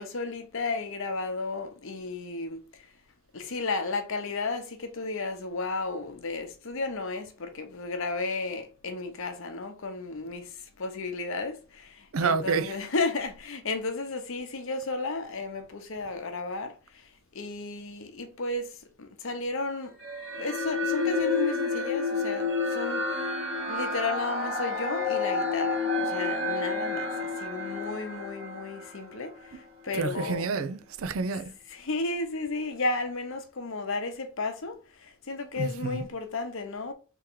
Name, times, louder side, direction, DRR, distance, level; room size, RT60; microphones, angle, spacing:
voice 1, 0.0-2.6 3.3-10.5 10.8-16.7 17.3-18.7 19.0-19.9 20.4-23.1 23.7-29.3 29.8-30.5 31.7-34.8 35.3-36.9, left 3 dB, 65° left, 0.8 m, -33 dB
voice 2, 12.1-12.7 29.9-31.5 35.6-36.0, right 5 dB, 70° right, 0.5 m, -29 dB
sound 1, 20.0-29.5, left 3 dB, 55° right, 1.3 m, -30 dB
3.6 x 3.0 x 4.5 m
head